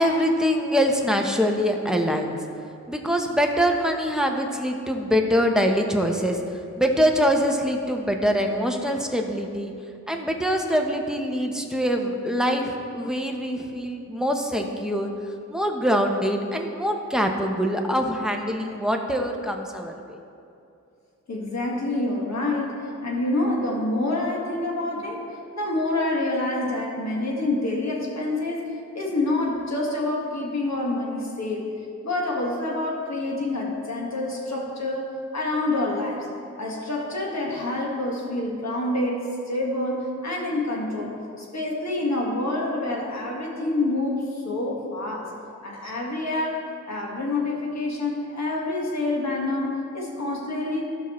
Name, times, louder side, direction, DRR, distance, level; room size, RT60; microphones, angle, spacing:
voice 1, 0.0-2.4 2.9-9.7 10.1-15.1 15.5-20.2, equal, ahead, 2 dB, 0.9 m, -24 dB
voice 2, 21.3-25.2 25.5-28.6 28.9-31.7 32.0-35.1 35.3-36.3 36.6-45.3 45.6-50.8, left 2 dB, 60° left, -2 dB, 1.7 m, -27 dB
15.5 x 5.8 x 3.2 m, 2.6 s
wide cardioid pair, 95°, 31 cm